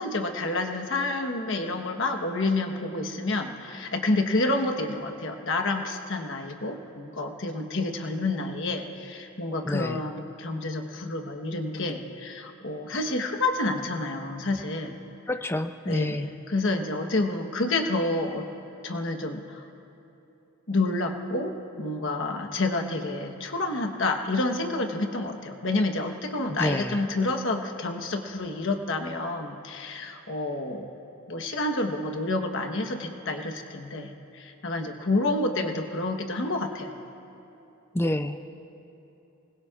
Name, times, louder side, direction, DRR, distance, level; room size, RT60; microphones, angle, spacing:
voice 1, 0.0-15.0 15.8-18.5 18.8-19.6 20.7-30.9 31.3-36.9, left 2 dB, 55° left, 4 dB, 1.2 m, -29 dB
voice 2, 9.6-10.1 15.3-16.3 26.6-27.0 37.9-38.5, left 1 dB, 10° left, 9 dB, 0.4 m, -28 dB
26.0 x 20.0 x 2.5 m, 3.0 s
head